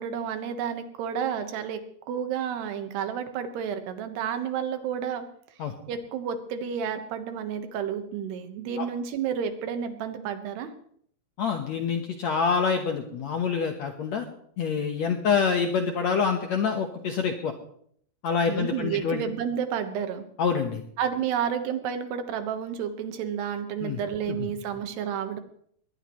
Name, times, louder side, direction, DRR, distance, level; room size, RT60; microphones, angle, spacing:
voice 1, 0.0-1.8 2.1-5.2 5.9-10.7 18.5-20.2 21.0-25.4, right 8 dB, 90° right, 8 dB, 3.4 m, -31 dB
voice 2, 11.4-14.3 14.6-17.5 18.2-19.2 20.4-20.8 23.8-24.0 24.4-24.5, left 6 dB, 70° left, 4 dB, 1.7 m, -26 dB
20.5 x 20.0 x 3.1 m, 0.64 s
omnidirectional pair, 4.6 m